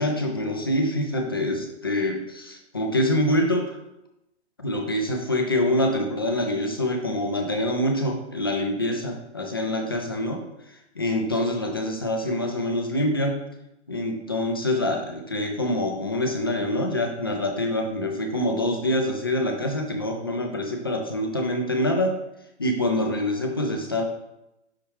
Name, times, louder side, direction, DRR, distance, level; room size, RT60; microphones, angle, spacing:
voice 1, 0.0-3.8 4.6-10.4 11.0-13.4 13.9-22.2 22.6-24.0, left 1 dB, 20° left, 3 dB, 0.3 m, -25 dB
5.7 x 5.3 x 3.2 m, 0.88 s
figure-of-eight pair, 130°, 36 cm